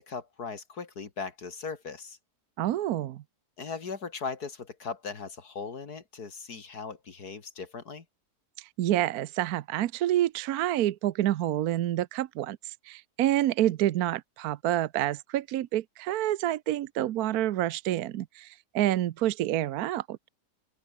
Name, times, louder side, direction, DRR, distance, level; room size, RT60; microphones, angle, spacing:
voice 1, 0.1-2.2 3.6-8.0, left 5 dB, 75° left, 2.7 m, -38 dB
voice 2, 2.6-3.2 8.6-20.2, right 13 dB, 75° right, 1.2 m, -28 dB
open air
omnidirectional pair, 1.7 m